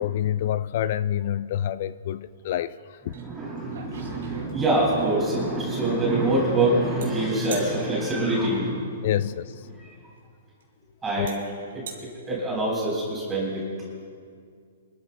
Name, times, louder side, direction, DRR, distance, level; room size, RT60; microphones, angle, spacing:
voice 1, 0.0-3.1 9.0-9.7 11.2-11.3, left 11 dB, 50° left, 16 dB, 0.3 m, -27 dB
voice 2, 3.1-9.0 9.7-9.8 11.0-11.4 11.7-11.8 12.3-13.7, right 2 dB, 15° right, -4 dB, 3.9 m, -25 dB
sound 1, 3.1-3.2 3.6-5.0 7.0-7.1 7.5-7.7 9.6-9.7 10.6-10.7 11.3-11.4 11.7-12.0, right 5 dB, 75° right, 3.6 m, -38 dB
27.0 x 13.0 x 2.3 m, 2.2 s
hypercardioid pair, 140°, 0 cm